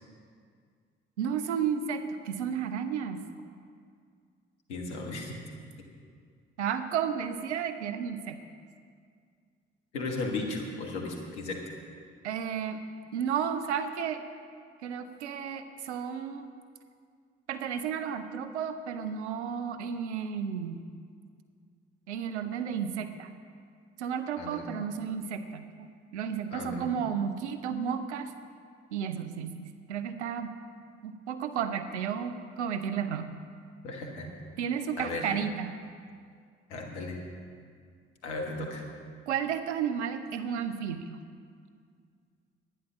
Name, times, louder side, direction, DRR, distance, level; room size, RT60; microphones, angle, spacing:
voice 1, 1.2-3.2 6.6-8.4 12.2-12.8 13.1-14.2 14.8-16.5 17.5-20.8 22.1-23.3 24.0-25.9 26.1-28.3 28.9-30.5 31.0-33.3 34.6-35.7 39.3-41.2, right 7 dB, 85° right, 9 dB, 0.7 m, -32 dB
voice 2, 4.7-5.4 9.9-11.6 24.4-24.7 26.5-26.9 33.8-34.3 35.0-35.3 36.7-37.2 38.2-38.8, left 2 dB, 85° left, 1 dB, 1.5 m, -35 dB
11.0 x 9.9 x 6.2 m, 2.1 s
figure-of-eight pair, 45°, 33 cm